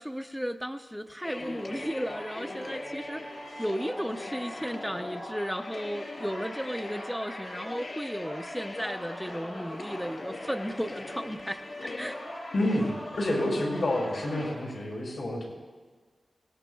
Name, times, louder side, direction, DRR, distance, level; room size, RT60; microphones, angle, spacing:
voice 1, 0.0-3.3 3.6-12.2, equal, ahead, 5 dB, 0.5 m, -34 dB
sound 1, 1.2-14.6, left 1 dB, 55° left, 4.4 m, -39 dB
voice 2, 12.5-15.5, left 1 dB, 70° left, -3 dB, 5.9 m, -29 dB
25.5 x 19.5 x 2.3 m, 1.5 s
wide cardioid pair, 115°, 0 cm